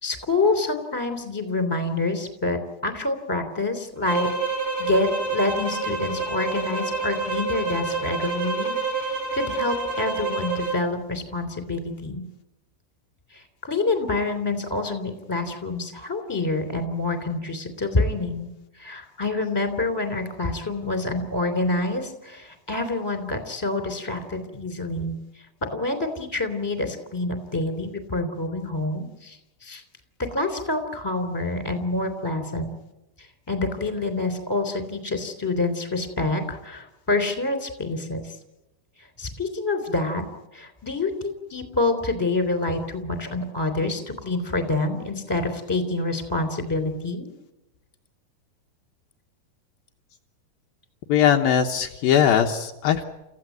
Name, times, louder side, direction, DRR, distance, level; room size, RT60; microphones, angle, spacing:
voice 1, 0.0-4.3 4.8-12.2 13.3-18.5 18.8-25.2 25.7-29.4 29.6-29.8 30.2-32.7 33.2-38.3 39.2-40.2 40.5-47.3, left 2 dB, 5° left, 7 dB, 2.8 m, -27 dB
sound 1, 4.0-10.8, right 3 dB, 30° right, 5.4 m, -28 dB
voice 2, 51.1-53.0, left 9 dB, 75° left, 4 dB, 2.6 m, -20 dB
29.5 x 15.5 x 9.3 m, 0.95 s
omnidirectional pair, 4.7 m